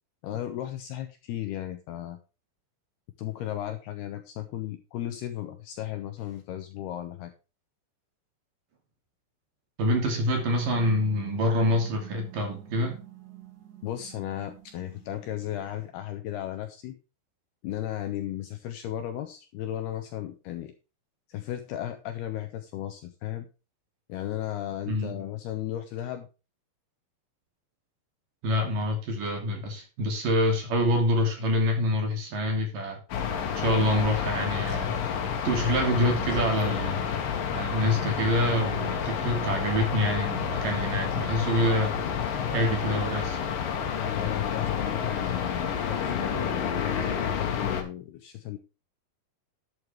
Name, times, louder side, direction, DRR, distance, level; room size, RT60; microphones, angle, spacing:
voice 1, 0.2-2.2 3.2-7.3 13.8-17.0 17.6-20.7 21.3-23.5 24.1-26.3 44.0-48.6, left 12 dB, 75° left, 8 dB, 2.5 m, -35 dB
voice 2, 9.8-13.0 24.9-25.1 28.4-33.0 33.6-35.0 35.4-37.1 37.5-42.0 42.5-43.4, equal, 50° right, 3 dB, 3.9 m, -26 dB
sound 1, 10.2-15.9, right 14 dB, 75° right, 4.9 m, -48 dB
sound 2, 33.1-47.8, left 7 dB, 60° left, 3.0 m, -29 dB
11.5 x 8.8 x 3.4 m, 0.31 s
omnidirectional pair, 5.5 m